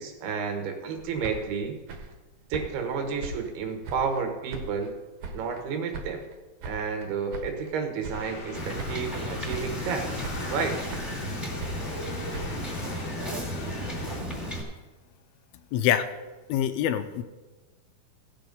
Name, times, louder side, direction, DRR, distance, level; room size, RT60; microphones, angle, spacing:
voice 1, 0.0-1.8 2.5-4.9 5.3-6.3 6.7-10.1 10.5-10.8, right 5 dB, 90° right, 5 dB, 3.4 m, -31 dB
sound 1, 1.0-4.2 4.5-5.6 5.9-7.7 8.0-8.5 8.8-9.2 9.5-9.9 10.2-11.3 11.6-13.8, right 2 dB, 65° right, 2.2 m, -40 dB
sound 2, 8.1-14.2, left 3 dB, 50° left, 2.1 m, -41 dB
Wind / Boat Water vehicle, 8.5-14.6, equal, ahead, 1.9 m, -34 dB
voice 2, 15.7-16.1 16.5-17.2, left 10 dB, 85° left, 10 dB, 2.5 m, -25 dB
17.0 x 6.8 x 5.3 m, 1.2 s
omnidirectional pair, 4.4 m